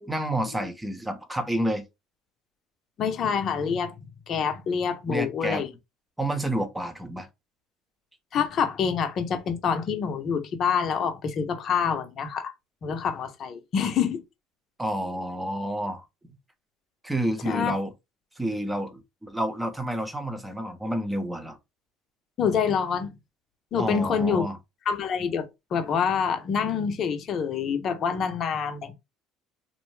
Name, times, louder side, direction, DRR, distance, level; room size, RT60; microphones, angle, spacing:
voice 1, 0.0-1.8 5.1-5.6 6.2-7.3 14.8-16.0 17.0-17.9 18.4-21.6 23.8-24.6, right 1 dB, 10° right, 0.7 m, -29 dB
voice 2, 3.0-3.9 4.3-5.7 8.3-12.5 12.8-14.2 17.4-17.7 22.4-23.2 23.7-24.4 24.9-25.5 25.7-28.9, left 6 dB, 50° left, 0.7 m, -26 dB
2.6 x 2.1 x 3.1 m
supercardioid pair, 85°, 0 cm